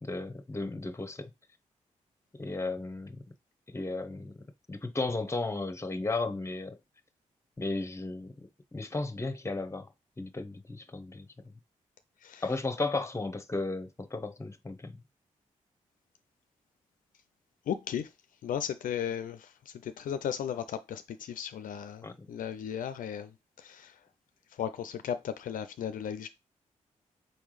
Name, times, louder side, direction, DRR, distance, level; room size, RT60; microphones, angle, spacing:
voice 1, 0.0-1.3 2.4-3.2 3.7-4.3 4.7-6.8 7.6-9.9 10.2-11.5 12.4-15.0 22.0-22.3, left 3 dB, 20° left, 0.8 m, -34 dB
voice 2, 17.7-18.1 18.4-23.3 23.6-23.9 24.6-26.3, left 9 dB, 70° left, 0.4 m, -35 dB
4.3 x 3.5 x 3.1 m
supercardioid pair, 40°, 14 cm